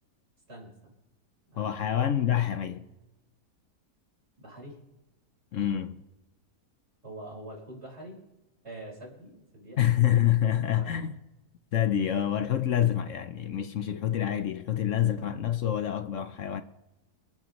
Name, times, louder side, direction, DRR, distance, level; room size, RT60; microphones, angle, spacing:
voice 1, 0.5-0.9 1.5-1.9 4.4-4.8 7.0-8.2 8.6-9.8 10.7-11.1, right 1 dB, 40° right, 5.1 m, -45 dB
voice 2, 1.6-2.8 5.5-6.0 9.8-11.1 11.7-16.6, left 11 dB, 60° left, 0.8 m, -27 dB
27.5 x 10.0 x 3.0 m
omnidirectional pair, 1.8 m